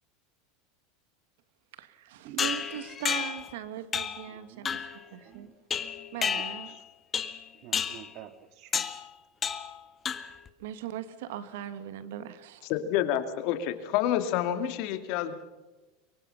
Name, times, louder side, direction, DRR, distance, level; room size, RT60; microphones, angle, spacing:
voice 1, 1.7-4.8 5.1-5.5 6.1-6.8 10.6-12.7, right 11 dB, 75° right, 12 dB, 1.8 m, -39 dB
sound 1, 2.4-3.5 3.9-4.3 4.6-5.0 5.7-6.8 7.1-7.4 7.7-8.1 8.7-9.0 9.4-9.8 10.0-10.5, left 7 dB, 30° left, 1.7 m, -31 dB
voice 2, 4.3-4.8 5.2-5.5 6.4-6.8 7.5-8.9, right 11 dB, 55° right, 11 dB, 2.0 m, -48 dB
voice 3, 12.7-15.3, left 11 dB, 60° left, 9 dB, 2.4 m, -28 dB
24.0 x 23.0 x 5.8 m, 1.1 s
hypercardioid pair, 100°, 0 cm